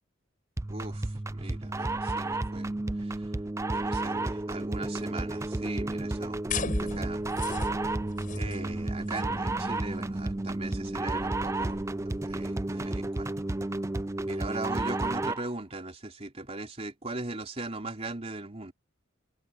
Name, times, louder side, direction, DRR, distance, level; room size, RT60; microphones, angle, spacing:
sound 1, 0.6-15.5, right 2 dB, 15° right, 0.4 m, -32 dB
voice 1, 0.7-3.2 3.7-6.4 6.8-7.2 8.3-11.8 12.2-13.3 14.2-18.7, right 2 dB, 30° right, 3.5 m, -39 dB
sound 2, 6.5-12.5, left 3 dB, 40° left, 7.7 m, -39 dB
head